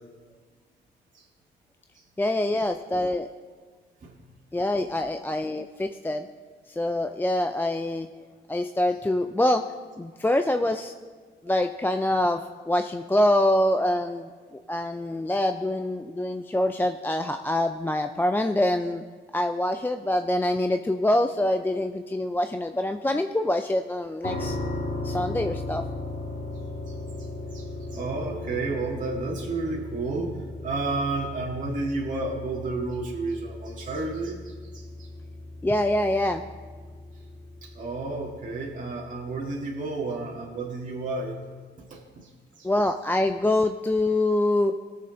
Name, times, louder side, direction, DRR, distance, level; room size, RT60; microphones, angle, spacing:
voice 1, 2.2-3.3 4.5-6.3 6.7-8.1 8.5-9.6 10.0-10.9 11.4-19.0 19.3-24.6 25.0-25.8 35.6-36.4 42.6-44.7, left 1 dB, 10° left, 7 dB, 0.4 m, -25 dB
sound 1, 24.2-39.1, left 2 dB, 45° left, 3.9 m, -37 dB
voice 2, 26.9-35.1 37.6-41.3 41.9-42.3 42.6-42.7, right 3 dB, 40° right, -3 dB, 1.7 m, -32 dB
17.5 x 6.8 x 3.8 m, 1.5 s
cardioid pair, 90°, 20 cm